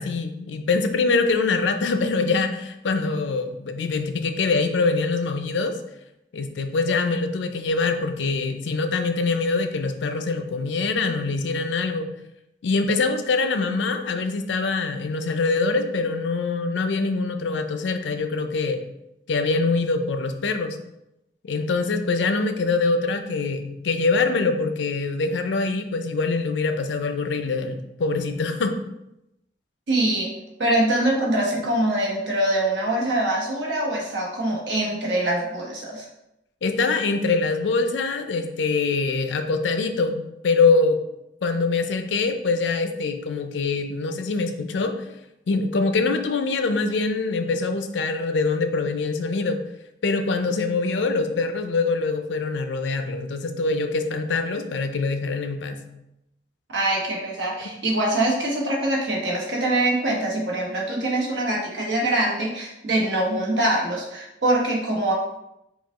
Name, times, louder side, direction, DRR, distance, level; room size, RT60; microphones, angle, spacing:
voice 1, 0.0-5.7 6.3-12.1 12.6-18.8 19.3-20.8 21.4-28.7 36.6-41.0 41.4-44.9 45.5-49.6 50.0-55.8, left 3 dB, 85° left, 7 dB, 0.4 m, -24 dB
voice 2, 29.9-30.3 30.6-36.0 56.7-65.1, right 1 dB, 80° right, -2 dB, 1.1 m, -24 dB
4.8 x 2.3 x 3.5 m, 0.87 s
head